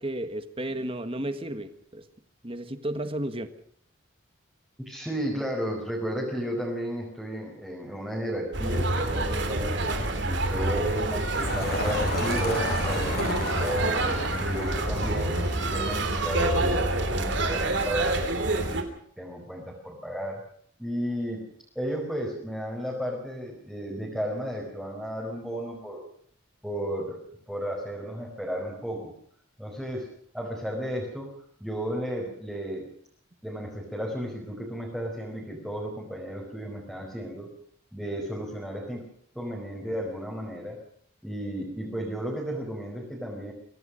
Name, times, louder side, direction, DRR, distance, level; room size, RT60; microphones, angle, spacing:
voice 1, 0.0-2.0 2.4-3.5, right 1 dB, 25° right, 10 dB, 1.6 m, -33 dB
voice 2, 4.8-11.3 11.5-13.2 13.6-15.3 15.7-18.8 19.2-20.4 20.8-21.4 21.7-26.0 26.6-27.2 27.5-29.1 29.6-30.1 30.3-31.3 31.6-32.9 33.4-37.5 37.9-39.0 39.3-40.8 41.2-43.5, equal, 5° right, -4 dB, 5.0 m, -33 dB
sound 1, 8.5-18.8, right 2 dB, 60° right, 3.3 m, -27 dB
sound 2, 11.4-18.3, left 1 dB, 50° left, 5.5 m, -33 dB
25.0 x 17.0 x 6.5 m, 0.63 s
head